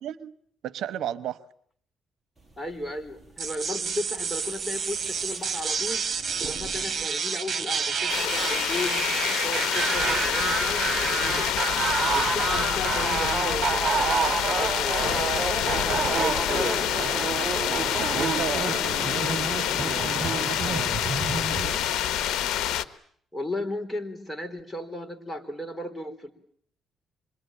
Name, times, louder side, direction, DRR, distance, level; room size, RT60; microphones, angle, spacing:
voice 1, 0.0-0.3 0.6-1.4 17.5-21.8, right 10 dB, 75° right, 15 dB, 1.1 m, -36 dB
sound 1, 2.4-7.0 7.3-8.0, right 2 dB, 5° right, 6.3 m, -48 dB
voice 2, 2.6-6.0 6.4-9.0 9.4-11.5 12.1-15.8 16.1-16.9 23.3-26.3, left 1 dB, 10° left, 5 dB, 4.3 m, -35 dB
sound 2, 3.4-21.8, right 5 dB, 40° right, 3.5 m, -29 dB
sound 3, 8.1-22.8, left 11 dB, 85° left, 1.2 m, -27 dB
26.5 x 22.5 x 9.0 m, 0.64 s
cardioid pair, 90°, 0 cm